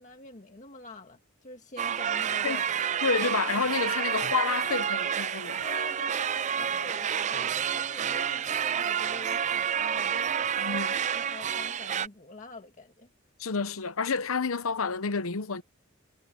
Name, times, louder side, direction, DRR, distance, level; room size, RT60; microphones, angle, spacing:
voice 1, 0.0-3.0 5.6-13.1, left 2 dB, 35° left, 1.7 m, -46 dB
sound 1, 1.8-12.1, right 8 dB, 35° right, 0.4 m, -29 dB
voice 2, 3.0-5.6 10.6-10.9 13.4-15.6, left 5 dB, 85° left, 0.9 m, -29 dB
head